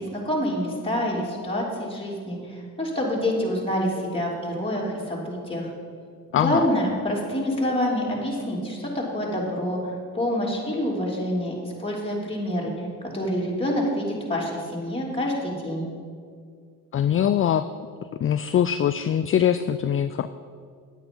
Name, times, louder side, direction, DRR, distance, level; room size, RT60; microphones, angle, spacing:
voice 1, 0.0-5.7 6.4-9.8 10.1-12.7 13.1-15.9, left 1 dB, 15° left, -4 dB, 3.1 m, -27 dB
voice 2, 6.3-6.6 16.9-17.6 18.2-20.3, left 9 dB, 35° left, 12 dB, 0.4 m, -22 dB
9.4 x 8.7 x 5.5 m, 2.1 s
supercardioid pair, 60°, 36 cm